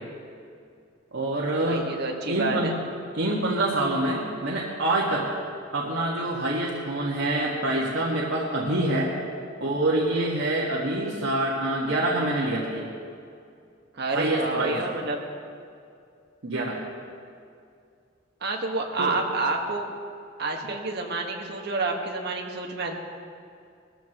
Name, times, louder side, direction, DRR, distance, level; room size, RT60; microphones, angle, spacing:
voice 1, 1.1-1.9 2.2-2.7 3.2-5.3 5.7-9.1 9.6-12.9 14.1-14.8 16.4-16.8 19.0-19.1, right 1 dB, 90° right, -5 dB, 1.8 m, -26 dB
voice 2, 1.7-2.8 13.9-15.2 18.4-19.9 20.4-22.9, right 3 dB, 60° right, 1 dB, 1.6 m, -29 dB
20.0 x 14.5 x 3.1 m, 2.4 s
head